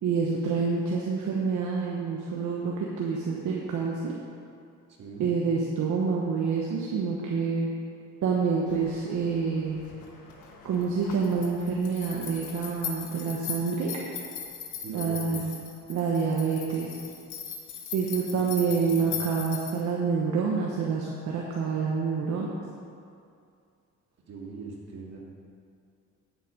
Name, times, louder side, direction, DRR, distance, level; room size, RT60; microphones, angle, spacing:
voice 1, 0.0-4.1 5.2-7.7 8.2-9.8 10.6-14.0 14.9-15.6 15.9-16.9 17.9-22.5, right 5 dB, 75° right, -2 dB, 1.2 m, -27 dB
voice 2, 5.0-5.4 14.8-15.6 18.2-18.6 18.8-19.1 24.3-25.2, right 3 dB, 60° right, -2 dB, 2.3 m, -42 dB
sound 1, 8.7-19.8, left 7 dB, 80° left, 1.4 m, -40 dB
9.4 x 7.5 x 5.2 m, 2.4 s
cardioid pair, 90°, 30 cm